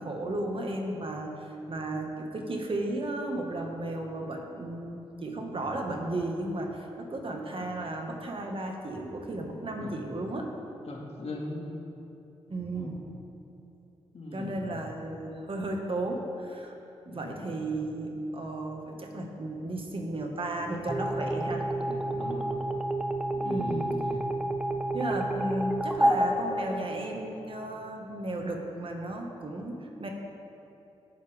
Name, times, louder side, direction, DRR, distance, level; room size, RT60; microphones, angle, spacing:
voice 1, 0.0-10.5 12.5-13.0 14.3-16.7 17.0-21.6 23.4-23.9 24.9-30.1, right 1 dB, 45° right, 2 dB, 1.7 m, -34 dB
voice 2, 10.8-11.7 12.7-12.9 14.1-14.8 17.0-17.5 21.9-22.5 23.4-24.3, left 2 dB, 55° left, -2 dB, 2.1 m, -40 dB
sound 1, 20.9-27.4, right 1 dB, 5° right, 1.0 m, -29 dB
17.5 x 7.3 x 3.5 m, 2.8 s
supercardioid pair, 45°, 12 cm